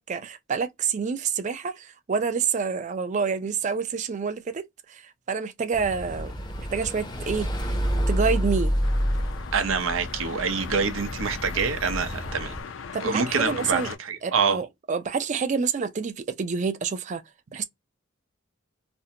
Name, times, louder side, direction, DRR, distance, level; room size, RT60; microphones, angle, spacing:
voice 1, 0.0-4.6 4.9-7.5 8.1-8.7 12.9-13.9 14.2-17.2 17.5-17.6, right 5 dB, 40° right, 0.4 m, -28 dB
sound 1, 5.7-12.6, equal, 20° left, 0.6 m, -29 dB
sound 2, 8.8-14.0, left 6 dB, 70° left, 0.4 m, -38 dB
voice 2, 9.5-12.5 13.0-14.6, right 5 dB, 85° right, 0.6 m, -26 dB
2.6 x 2.0 x 2.7 m
head